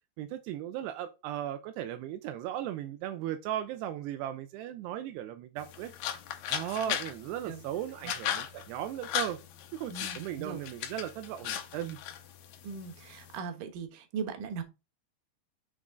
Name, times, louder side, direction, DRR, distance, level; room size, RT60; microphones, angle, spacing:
voice 1, 0.2-5.9 6.5-9.4 9.7-12.0, right 11 dB, 85° right, 2.6 m, -37 dB
sound 1, 5.6-13.4, left 10 dB, 70° left, 2.2 m, -38 dB
voice 2, 9.9-10.6 12.6-14.6, right 6 dB, 65° right, 2.4 m, -39 dB
6.3 x 6.1 x 3.7 m
omnidirectional pair, 5.0 m